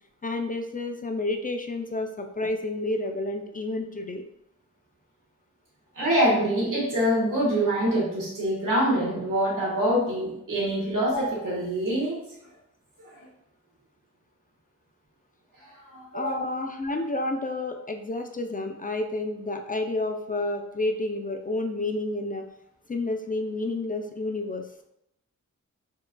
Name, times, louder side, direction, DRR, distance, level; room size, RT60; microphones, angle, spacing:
voice 1, 0.2-4.3 16.1-22.5 22.9-24.6, left 2 dB, 25° left, 4 dB, 0.4 m, -30 dB
voice 2, 5.9-12.2 13.0-13.2 15.8-16.3, equal, 90° right, -6 dB, 1.5 m, -25 dB
4.5 x 2.3 x 2.2 m, 0.82 s
cardioid pair, 50°, 31 cm